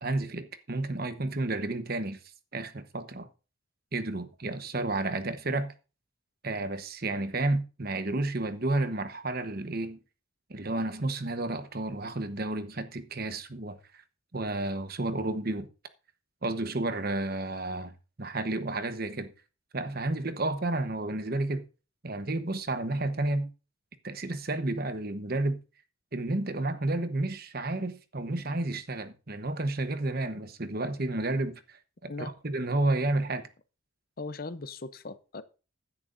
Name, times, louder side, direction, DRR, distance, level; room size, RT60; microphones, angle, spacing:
voice 1, 0.0-2.2 2.5-3.3 3.9-5.7 6.4-10.0 10.5-14.0 14.3-15.7 16.4-19.3 19.7-21.6 22.0-23.5 24.0-25.6 26.1-33.5, right 2 dB, 45° right, 1.1 m, -31 dB
voice 2, 34.2-35.4, left 3 dB, 45° left, 0.7 m, -39 dB
15.5 x 10.5 x 2.6 m
head